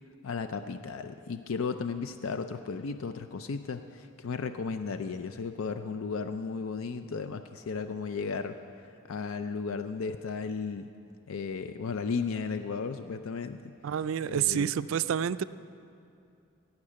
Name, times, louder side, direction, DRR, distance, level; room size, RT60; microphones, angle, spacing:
voice 1, 0.2-8.6 9.1-10.9 11.3-13.7 14.3-14.7, left 5 dB, 90° left, 9 dB, 0.5 m, -34 dB
voice 2, 13.8-15.4, right 8 dB, 75° right, 15 dB, 0.4 m, -28 dB
16.5 x 5.9 x 8.6 m, 2.5 s
head